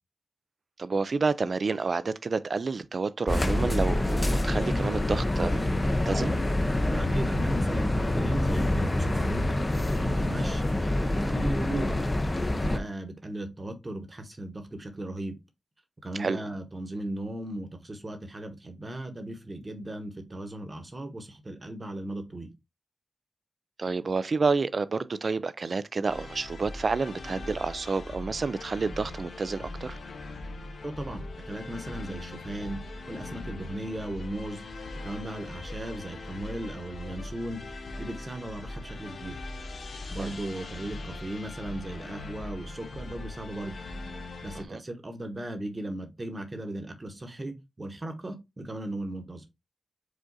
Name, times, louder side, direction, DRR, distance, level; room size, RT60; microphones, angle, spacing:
voice 1, 0.8-6.3 16.2-16.4 23.8-30.0 40.2-40.3 44.6-44.8, right 4 dB, 55° right, 0.3 m, -29 dB
sound 1, 3.3-12.8, left 1 dB, 25° left, 0.6 m, -26 dB
voice 2, 6.8-9.4 10.0-12.0 12.5-15.4 16.0-22.5 30.8-32.8 33.1-34.6 35.0-37.6 38.0-39.4 40.1-43.8 44.4-49.4, right 1 dB, 30° right, 1.0 m, -37 dB
sound 2, 26.1-44.6, left 2 dB, 75° left, 0.6 m, -40 dB
4.9 x 2.5 x 3.9 m
wide cardioid pair, 110°, 0 cm